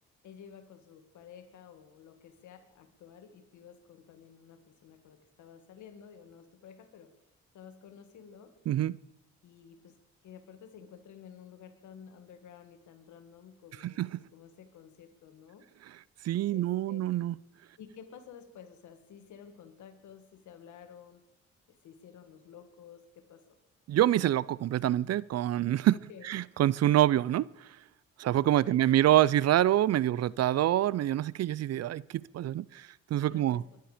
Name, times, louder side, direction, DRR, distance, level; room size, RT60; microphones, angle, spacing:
voice 1, 0.2-7.2 7.5-8.6 9.4-14.0 14.3-15.7 16.5-17.0 17.8-21.2 21.7-23.6 25.9-26.3 28.6-29.0 33.3-33.8, left 7 dB, 80° left, 1.8 m, -52 dB
voice 2, 8.7-9.0 13.8-14.1 16.2-17.4 23.9-26.0 26.3-27.4 28.2-33.6, right 13 dB, 60° right, 0.5 m, -26 dB
22.5 x 10.5 x 5.0 m
cardioid pair, 70°, 29 cm